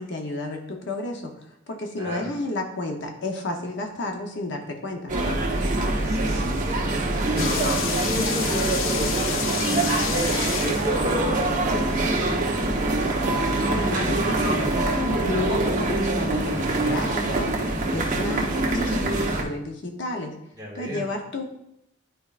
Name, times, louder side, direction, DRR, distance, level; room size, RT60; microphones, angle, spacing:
voice 1, 0.0-5.1 13.7-20.3 20.7-21.4, left 2 dB, 60° left, 3 dB, 0.9 m, -32 dB
voice 2, 1.9-2.3 5.6-7.0 7.3-13.1 20.6-21.1, equal, 20° right, -4 dB, 1.8 m, -34 dB
sound 1, 5.1-19.4, right 2 dB, 40° right, 1.0 m, -24 dB
sound 2, 7.4-11.2, left 7 dB, 80° left, 0.5 m, -29 dB
10.5 x 4.5 x 2.5 m, 0.79 s
head